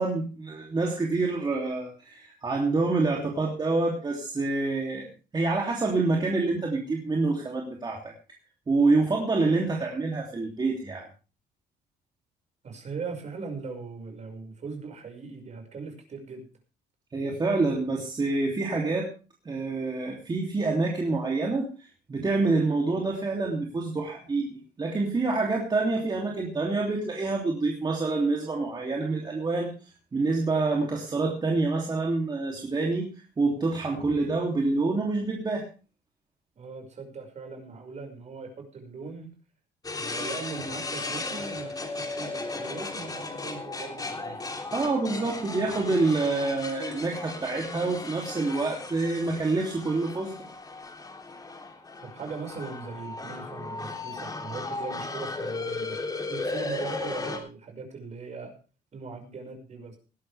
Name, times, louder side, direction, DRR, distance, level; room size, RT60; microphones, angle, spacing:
voice 1, 0.0-8.1 8.7-11.1 17.1-19.1 19.4-29.7 30.1-33.1 33.4-35.7 44.7-50.5, right 3 dB, 25° right, -1 dB, 3.1 m, -27 dB
voice 2, 12.6-16.5 36.6-39.3 40.0-44.5 52.0-56.0 56.3-58.5 58.9-60.0, right 4 dB, 40° right, 4 dB, 5.8 m, -40 dB
sound 1, 39.8-57.4, left 3 dB, 20° left, 3.3 m, -36 dB
19.5 x 12.5 x 3.5 m, 0.35 s
cardioid pair, 110°, 17 cm